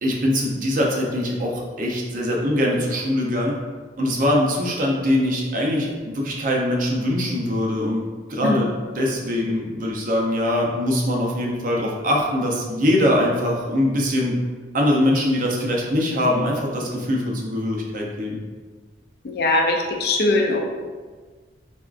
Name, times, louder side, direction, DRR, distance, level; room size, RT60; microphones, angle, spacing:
voice 1, 0.0-3.6 4.0-8.0 8.3-8.7 9.0-14.3 14.7-18.4, left 1 dB, 50° right, -2 dB, 0.5 m, -22 dB
voice 2, 19.2-20.6, left 2 dB, 60° left, 1 dB, 0.4 m, -20 dB
3.5 x 2.4 x 2.4 m, 1.4 s
head